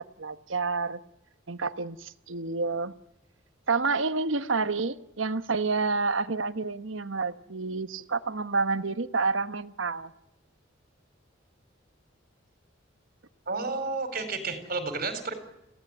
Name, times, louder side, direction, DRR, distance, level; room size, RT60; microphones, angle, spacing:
voice 1, 0.2-1.0 1.5-2.9 3.7-10.1, right 4 dB, 75° right, 12 dB, 1.1 m, -29 dB
voice 2, 13.5-15.3, right 3 dB, 50° right, 8 dB, 4.4 m, -31 dB
27.0 x 16.5 x 9.0 m, 0.87 s
head